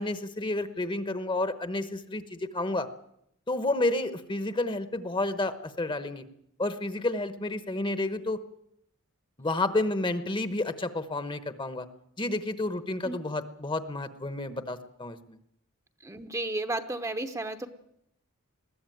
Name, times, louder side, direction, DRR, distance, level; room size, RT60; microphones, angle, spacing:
voice 1, 0.0-2.9 3.5-6.2 6.6-8.4 9.4-11.9 12.2-15.4, left 2 dB, 25° left, 11 dB, 1.1 m, -30 dB
voice 2, 16.0-17.7, right 2 dB, 15° right, 8 dB, 0.9 m, -33 dB
21.0 x 15.0 x 9.3 m, 0.77 s
head